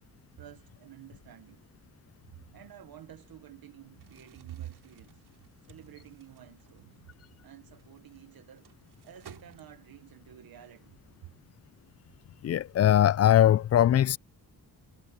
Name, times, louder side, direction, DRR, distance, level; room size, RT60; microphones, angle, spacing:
voice 1, 0.4-1.7 2.5-5.2 5.6-7.1 7.4-8.7 9.0-11.3, right 12 dB, 65° right, 1.2 m, -50 dB
Crumpling crinkling, 3.9-10.1, right 9 dB, 85° right, 4.3 m, -58 dB
voice 2, 12.4-14.2, left 11 dB, 40° left, 0.4 m, -21 dB
cardioid pair, 110°, 38 cm